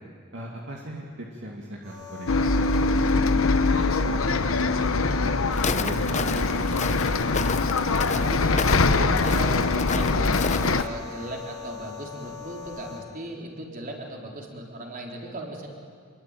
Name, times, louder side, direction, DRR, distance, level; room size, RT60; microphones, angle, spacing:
voice 1, 0.3-5.3 5.8-7.4, right 1 dB, 60° right, -1 dB, 2.6 m, -39 dB
sound 1, 1.8-13.0, left 7 dB, 90° right, 6.8 m, -41 dB
Bus, 2.3-10.8, left 3 dB, 75° left, 1.1 m, -23 dB
Walk footsteps, 5.5-10.9, left 5 dB, 35° left, 0.8 m, -31 dB
voice 2, 8.2-15.7, right 1 dB, 45° right, 0 dB, 4.2 m, -37 dB
26.5 x 22.5 x 9.2 m, 2.1 s
head